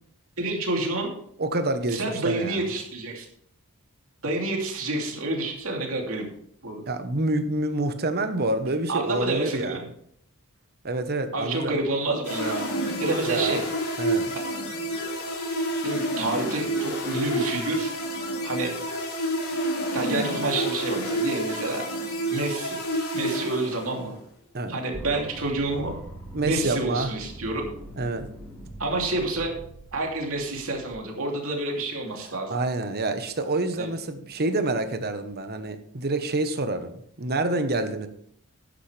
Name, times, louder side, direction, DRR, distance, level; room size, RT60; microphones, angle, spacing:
voice 1, 0.4-1.1 1.9-3.2 4.2-6.3 6.6-6.8 8.9-9.9 11.3-12.7 13.0-13.6 15.8-17.9 18.4-18.7 19.9-21.9 22.3-22.8 23.1-24.2 24.7-25.9 26.4-27.6 28.8-29.6 29.9-32.6 33.8-33.9, right 2 dB, 65° right, 0 dB, 2.8 m, -28 dB
voice 2, 1.4-2.7 6.9-9.8 10.8-11.7 13.2-13.6 14.0-14.4 24.5-24.8 26.3-27.1 28.0-28.3 32.2-38.1, right 2 dB, 45° right, 9 dB, 1.1 m, -27 dB
sound 1, 12.2-24.1, right 1 dB, 75° left, 3.3 m, -29 dB
sound 2, 24.9-30.9, right 1 dB, 5° left, 3.3 m, -42 dB
11.5 x 10.0 x 3.4 m, 0.66 s
head